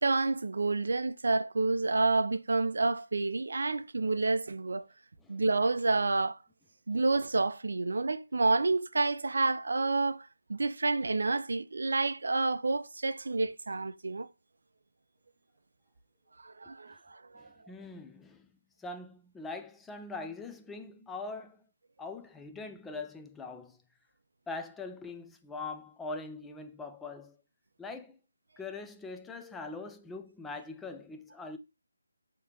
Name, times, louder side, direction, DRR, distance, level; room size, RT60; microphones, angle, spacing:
voice 1, 0.0-4.8 5.3-6.4 6.9-14.3 16.4-17.5, right 3 dB, 60° right, 0.4 m, -29 dB
voice 2, 17.3-18.5 18.8-21.6 22.0-23.8 24.5-27.4 27.8-28.2 28.6-31.6, left 3 dB, 5° left, 0.3 m, -42 dB
4.7 x 2.9 x 2.8 m
figure-of-eight pair, 155°, 0 cm